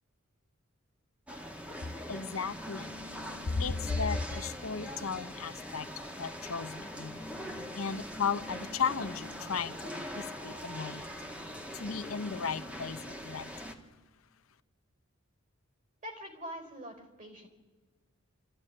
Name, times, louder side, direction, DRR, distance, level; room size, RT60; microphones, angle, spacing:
sound 1, 1.3-13.7, equal, 5° right, 1.7 m, -42 dB
voice 1, 1.8-2.9 3.2-13.8, left 5 dB, 85° left, 10 dB, 0.8 m, -36 dB
voice 2, 16.0-17.5, equal, 40° right, 4 dB, 4.6 m, -44 dB
28.5 x 14.0 x 10.0 m, 1.3 s
head